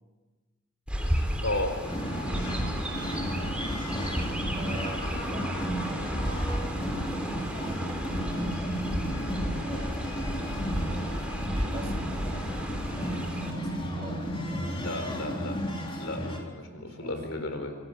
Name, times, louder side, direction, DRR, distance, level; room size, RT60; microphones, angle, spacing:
Chirp tweet, 0.9-13.5, equal, 5° right, 3.5 m, -33 dB
voice 1, 1.4-1.7 14.8-15.5 16.0-17.8, left 2 dB, 65° left, 7 dB, 4.1 m, -33 dB
sound 1, 1.8-16.4, equal, 25° left, 4.0 m, -33 dB
voice 2, 2.8-3.4 4.5-6.1 7.6-8.9 9.6-10.8 11.4-12.6 13.0-15.3 16.6-17.2, right 1 dB, 30° right, 1 dB, 3.3 m, -45 dB
26.5 x 17.5 x 8.4 m, 1.3 s
head